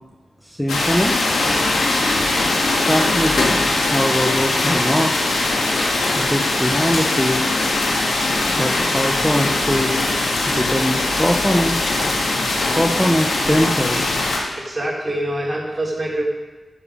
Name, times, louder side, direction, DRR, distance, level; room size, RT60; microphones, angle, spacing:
voice 1, 0.4-1.1 2.7-5.1 6.1-7.4 8.6-10.0 10.5-11.8 12.7-14.4, equal, 5° left, 1 dB, 1.0 m, -22 dB
sound 1, 0.7-14.4, left 2 dB, 90° left, 1.8 m, -20 dB
voice 2, 14.5-16.2, right 1 dB, 30° right, -4 dB, 3.8 m, -25 dB
12.0 x 7.2 x 5.1 m, 1.2 s
cardioid pair, 50°, 0 cm